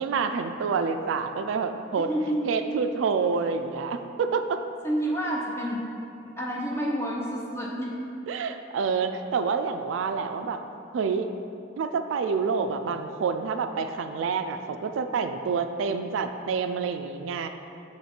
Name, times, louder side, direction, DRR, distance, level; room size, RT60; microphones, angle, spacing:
voice 1, 0.0-2.1 2.5-4.6 8.3-10.6 10.9-11.3 11.8-17.5, right 5 dB, 80° right, 8 dB, 0.3 m, -28 dB
voice 2, 2.0-2.4 4.8-5.8 6.2-7.9, equal, 15° left, -3 dB, 0.7 m, -29 dB
7.4 x 3.1 x 4.3 m, 2.6 s
head